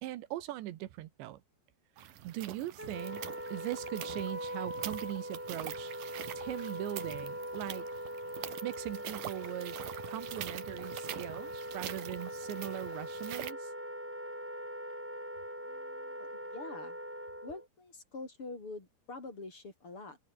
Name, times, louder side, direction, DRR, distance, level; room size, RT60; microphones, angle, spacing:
voice 1, 0.0-1.4 2.2-3.3 3.5-5.9 6.4-7.9 8.6-9.8 10.1-13.7, right 15 dB, 85° right, 3.6 m, -40 dB
sound 1, 2.0-13.5, right 11 dB, 60° right, 2.7 m, -45 dB
Wind instrument woodwind instrument, 2.8-17.7, equal, 5° right, 3.8 m, -42 dB
voice 2, 15.6-17.0 17.4-20.2, left 3 dB, 30° left, 5.1 m, -46 dB
omnidirectional pair, 5.0 m